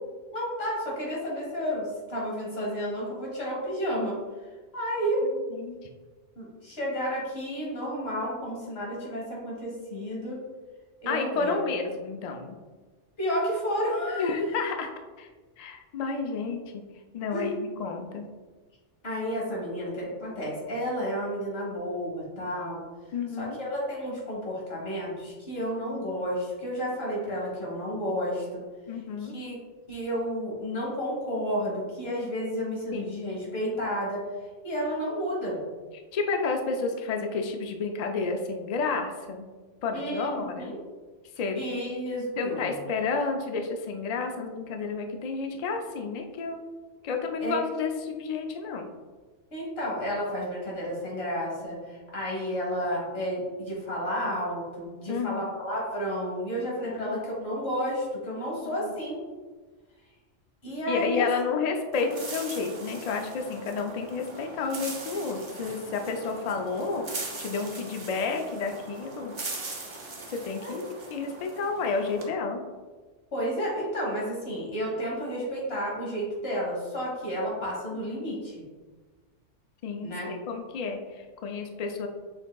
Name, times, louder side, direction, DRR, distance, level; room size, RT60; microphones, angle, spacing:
voice 1, 0.3-4.2 4.7-5.2 6.3-10.4 11.0-11.6 13.2-14.4 17.3-17.5 19.0-22.8 23.4-28.6 29.2-29.6 29.9-34.3 34.6-35.6 39.9-40.8 41.5-42.8 47.4-47.5 49.5-59.2 60.6-61.3 70.6-70.7 73.3-78.6 80.0-80.3, equal, 55° left, -5 dB, 1.6 m, -31 dB
voice 2, 11.1-12.6 14.2-14.9 15.2-15.3 15.6-16.8 17.1-18.2 23.1-23.6 28.9-29.4 32.9-33.2 36.1-39.5 39.8-40.7 41.4-41.6 42.4-46.6 47.0-48.9 55.1-55.4 56.8-57.2 58.8-58.9 60.9-69.3 70.3-70.8 71.1-72.6 79.8-82.1, left 4 dB, 85° left, 4 dB, 0.3 m, -31 dB
sound 1, 61.9-72.3, right 2 dB, 35° right, 0.5 m, -40 dB
6.3 x 3.5 x 2.2 m, 1.3 s
omnidirectional pair, 1.2 m